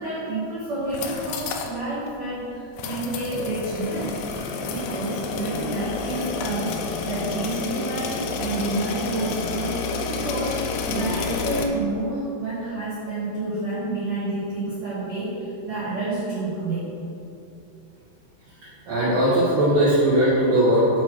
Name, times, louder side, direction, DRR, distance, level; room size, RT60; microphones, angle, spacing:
voice 1, 0.0-4.2 4.7-6.7 7.1-9.8 10.1-16.9, right 2 dB, 80° right, -10 dB, 1.5 m, -29 dB
sound 1, 0.8-1.8 2.1-2.2 2.8-11.7, left 4 dB, 85° left, 3.0 m, -29 dB
voice 2, 18.8-21.0, right 1 dB, 65° right, -12 dB, 1.7 m, -19 dB
8.3 x 3.1 x 6.1 m, 2.7 s
omnidirectional pair, 5.5 m